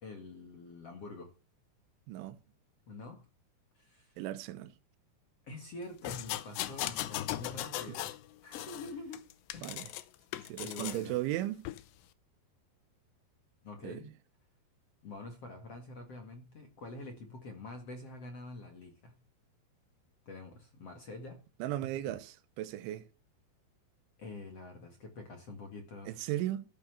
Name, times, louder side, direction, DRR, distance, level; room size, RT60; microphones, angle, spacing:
voice 1, 0.0-1.3 2.9-3.3 3.7-4.2 5.4-8.1 8.4-9.7 10.6-11.2 13.6-14.1 15.0-19.2 20.3-21.4 22.1-22.2 24.2-26.3, left 2 dB, 45° left, 2.2 m, -46 dB
voice 2, 2.1-2.4 4.2-4.7 9.6-9.9 10.5-11.6 13.8-14.0 21.6-23.0 26.1-26.7, right 14 dB, 85° right, 3.4 m, -36 dB
sound 1, 6.0-8.2 8.5-10.0 10.3-11.0 11.6-11.8, left 15 dB, 75° left, 2.8 m, -38 dB
14.5 x 9.0 x 6.9 m
omnidirectional pair, 5.4 m